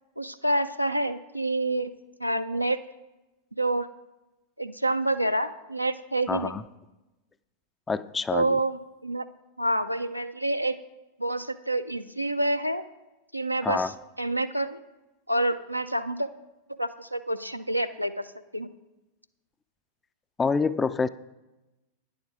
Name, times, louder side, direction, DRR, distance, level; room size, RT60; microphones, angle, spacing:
voice 1, 0.2-1.9 2.2-2.8 3.6-3.9 4.6-6.5 8.3-9.3 9.6-10.8 11.2-12.8 13.3-13.9 14.2-14.8 15.3-16.3 16.8-18.3 18.5-18.7, right 1 dB, 90° right, 9 dB, 0.4 m, -27 dB
voice 2, 6.3-6.6 7.9-8.6 13.6-13.9 20.4-21.1, left 4 dB, 15° left, 15 dB, 0.3 m, -26 dB
9.8 x 7.1 x 4.8 m, 1.0 s
figure-of-eight pair, 90°, 0 cm